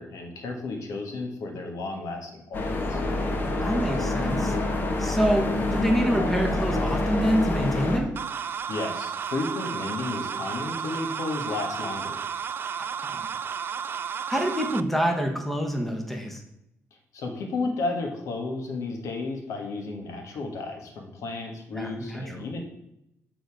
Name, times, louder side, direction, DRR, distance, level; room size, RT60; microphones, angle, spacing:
voice 1, 0.0-3.0 8.7-12.2 17.1-22.6, left 3 dB, 80° left, 3 dB, 1.5 m, -33 dB
sound 1, 2.5-8.0, left 2 dB, 40° left, 1.2 m, -27 dB
voice 2, 3.6-4.6 5.0-8.1 13.1-13.3 14.3-16.4 21.7-22.5, equal, 5° left, 3 dB, 1.1 m, -26 dB
sound 2, 8.2-14.8, right 7 dB, 45° right, 0.3 m, -32 dB
8.7 x 4.0 x 4.8 m, 0.81 s
cardioid pair, 105°, 5 cm